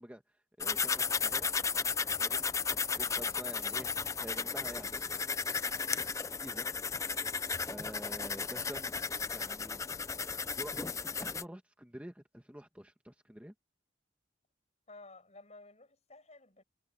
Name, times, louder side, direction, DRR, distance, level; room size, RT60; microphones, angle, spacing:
voice 1, 0.0-1.5 2.2-5.1 5.4-6.0 6.4-6.6 7.7-8.9 9.3-9.8 10.6-13.5, equal, 5° right, 1.8 m, -48 dB
sound 1, 0.6-11.4, left 5 dB, 15° left, 0.4 m, -34 dB
voice 2, 14.9-16.6, left 2 dB, 35° left, 6.9 m, -54 dB
head